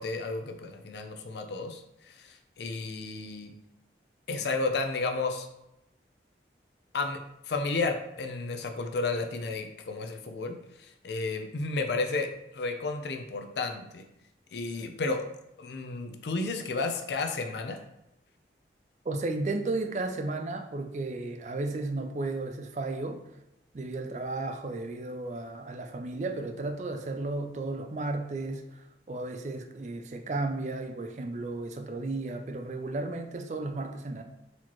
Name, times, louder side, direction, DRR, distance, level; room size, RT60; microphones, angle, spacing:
voice 1, 0.0-3.5 4.3-5.5 6.9-7.2 7.5-12.3 12.5-14.1 14.5-15.2 15.6-17.8, left 3 dB, 75° left, 5 dB, 0.5 m, -32 dB
voice 2, 19.0-23.2 23.7-34.2, right 2 dB, 40° right, 5 dB, 0.4 m, -34 dB
4.1 x 2.9 x 3.0 m, 0.86 s
head